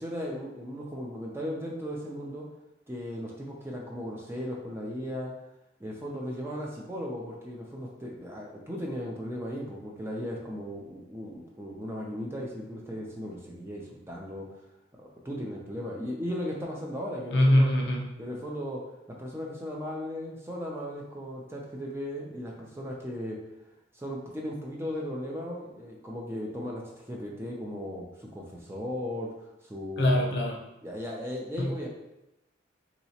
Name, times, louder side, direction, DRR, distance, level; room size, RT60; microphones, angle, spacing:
voice 1, 0.0-2.5 2.9-5.3 5.8-14.5 14.9-17.7 18.2-18.8 19.2-23.4 23.9-30.3 30.8-31.9, equal, 15° right, -2 dB, 0.4 m, -36 dB
voice 2, 17.3-18.0 30.0-30.6 31.6-31.7, left 1 dB, 60° left, 0 dB, 0.6 m, -23 dB
3.2 x 2.9 x 2.8 m, 0.91 s
head